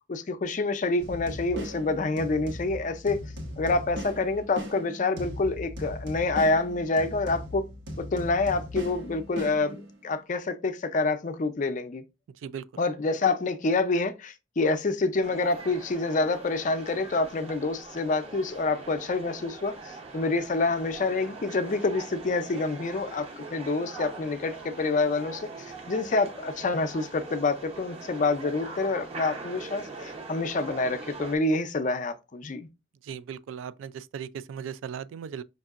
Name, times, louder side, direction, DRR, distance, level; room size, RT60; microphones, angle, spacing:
voice 1, 0.1-3.2 3.6-7.7 8.0-12.0 12.8-25.5 25.9-32.7, left 3 dB, 40° left, 0.4 m, -27 dB
sound 1, 1.0-10.1, equal, 65° right, 1.0 m, -38 dB
sound 2, 15.2-31.4, right 3 dB, 30° right, 0.7 m, -42 dB
voice 2, 33.0-35.4, right 7 dB, 85° right, 0.3 m, -37 dB
5.3 x 2.7 x 2.4 m
head